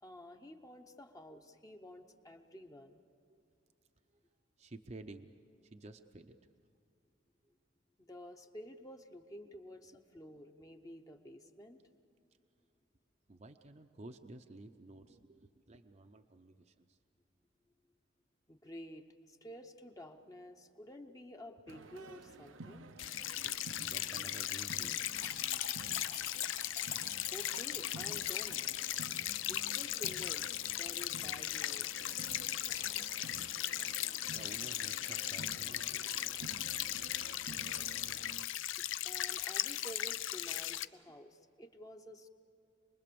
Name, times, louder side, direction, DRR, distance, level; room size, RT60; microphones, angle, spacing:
voice 1, 0.0-3.0 8.0-11.8 18.5-22.9 27.0-28.8 29.5-32.1 38.8-42.3, equal, 20° left, 5 dB, 0.8 m, -51 dB
voice 2, 4.6-5.3 5.6-6.4 13.3-17.0 22.4-22.5 23.3-23.5 23.8-25.0 25.8-26.0 33.8-36.5, right 2 dB, 35° right, 5 dB, 0.6 m, -53 dB
sound 1, 21.7-38.5, right 3 dB, 90° right, 0.8 m, -52 dB
sound 2, 23.0-40.8, left 13 dB, 80° left, 0.5 m, -38 dB
sound 3, 25.0-34.9, left 9 dB, 55° left, 1.3 m, -45 dB
27.0 x 20.5 x 6.9 m, 2.5 s
head